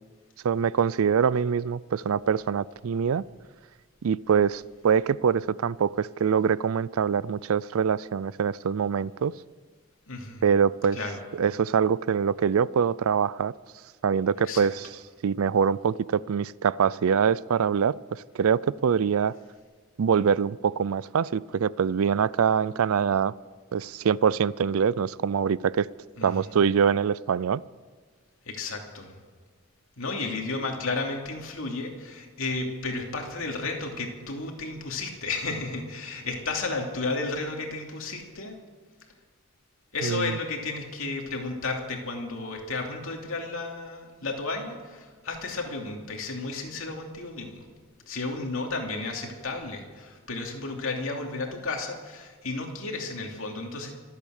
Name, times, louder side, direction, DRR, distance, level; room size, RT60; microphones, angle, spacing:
voice 1, 0.4-3.2 4.0-9.3 10.4-11.0 11.3-13.5 14.0-14.9 15.2-19.4 20.0-23.3 23.7-25.9 26.2-27.6 40.0-40.4, right 7 dB, 75° right, 21 dB, 0.4 m, -24 dB
voice 2, 10.1-10.4 10.9-11.2 14.5-14.7 26.2-26.5 28.4-29.1 30.0-38.6 39.9-47.6 48.1-53.9, left 3 dB, 65° left, 1 dB, 2.7 m, -33 dB
25.5 x 8.7 x 6.5 m, 1.6 s
head